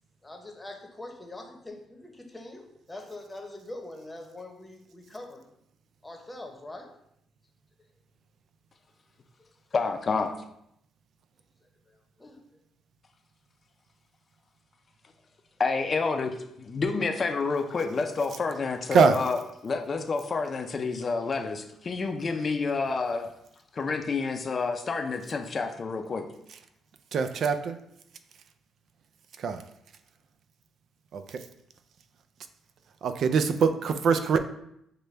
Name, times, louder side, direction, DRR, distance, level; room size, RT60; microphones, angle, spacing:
voice 1, 0.2-5.4 6.0-6.9 11.9-12.4, left 2 dB, 15° left, 2 dB, 0.9 m, -43 dB
voice 2, 9.7-10.3 15.6-23.3 23.7-26.3, left 4 dB, 40° left, 6 dB, 0.5 m, -29 dB
voice 3, 27.1-27.8 29.4-29.6 31.1-31.2 33.0-34.4, right 5 dB, 65° right, 9 dB, 0.4 m, -23 dB
6.4 x 2.2 x 3.2 m, 0.76 s
cardioid pair, 90°, 0 cm